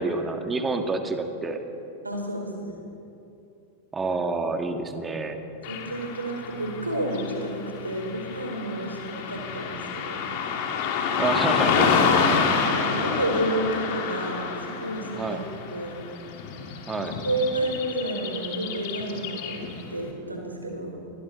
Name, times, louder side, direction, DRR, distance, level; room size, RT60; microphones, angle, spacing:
voice 1, 0.0-1.6 3.9-5.4 11.2-12.1 15.2-15.4 16.9-17.2, right 3 dB, 15° right, 6 dB, 1.9 m, -28 dB
voice 2, 2.0-2.7 5.7-10.2 11.9-12.2 12.7-15.4 15.7-16.0 16.9-20.9, right 1 dB, 80° right, 1 dB, 4.4 m, -30 dB
Car passing by / Traffic noise roadway noise, 5.6-19.9, left 6 dB, 45° left, 2.8 m, -28 dB
29.0 x 23.0 x 4.2 m, 2.8 s
figure-of-eight pair, 90°, 0 cm